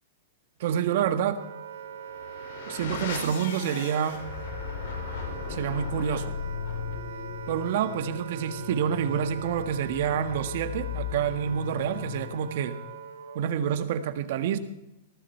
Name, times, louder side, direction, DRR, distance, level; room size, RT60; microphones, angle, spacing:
voice 1, 0.6-1.4 2.7-4.2 5.5-6.3 7.5-12.7 13.3-14.6, right 9 dB, 60° right, 10 dB, 1.6 m, -28 dB
Wind instrument woodwind instrument, 0.9-13.5, right 7 dB, 80° right, 2.1 m, -42 dB
sound 1, 1.9-12.7, left 7 dB, 70° left, 4.0 m, -37 dB
19.0 x 12.5 x 4.6 m, 0.87 s
hypercardioid pair, 145°, 0 cm